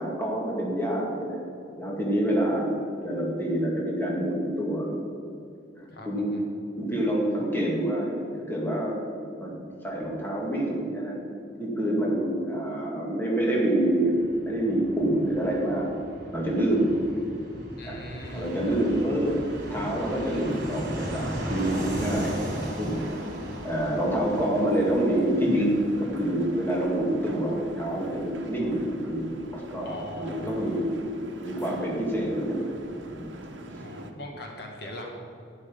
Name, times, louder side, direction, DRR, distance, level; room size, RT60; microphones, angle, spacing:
voice 1, 0.0-1.4 1.8-2.7 3.0-4.9 5.8-6.3 6.8-9.0 9.4-9.6 9.8-11.2 11.6-14.2 14.4-15.9 16.3-16.9 17.8-18.0 18.3-19.4 19.7-22.4 22.8-23.0 23.6-30.9 31.4-32.8 33.1-33.2, right 1 dB, 10° left, -3 dB, 2.1 m, -27 dB
voice 2, 5.9-6.4 17.8-18.5 29.8-30.8 33.8-35.1, left 1 dB, 55° left, 1 dB, 1.7 m, -40 dB
Fixed-wing aircraft airplane, 13.8-32.2 32.5-32.6 32.8-33.5, right 1 dB, 45° right, 3.0 m, -38 dB
sound 1, 18.2-34.1, right 1 dB, 65° right, 1.1 m, -42 dB
11.0 x 10.0 x 5.3 m, 2.6 s
head